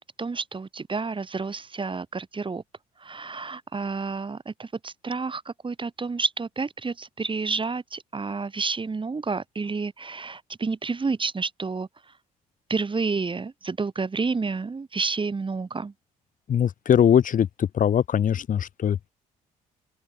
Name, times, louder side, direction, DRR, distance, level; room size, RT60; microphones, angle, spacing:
voice 1, 0.2-2.6 3.0-11.9 12.7-15.9, right 4 dB, 25° right, 3.6 m, -30 dB
voice 2, 16.5-19.1, left 9 dB, 45° left, 1.7 m, -21 dB
open air
figure-of-eight pair, 45°, 19 cm